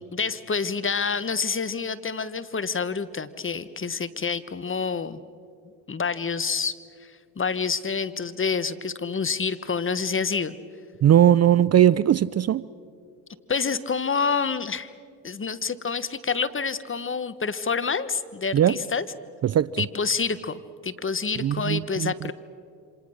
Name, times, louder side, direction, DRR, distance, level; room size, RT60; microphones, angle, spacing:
voice 1, 0.0-5.2 5.9-10.6 13.5-14.9 15.2-19.1 19.8-22.3, left 5 dB, 30° left, 1.3 m, -28 dB
voice 2, 11.0-12.6 18.5-18.8 19.4-19.8 21.4-22.3, right 10 dB, 35° right, 0.5 m, -19 dB
28.5 x 26.5 x 6.5 m
supercardioid pair, 60°, 43 cm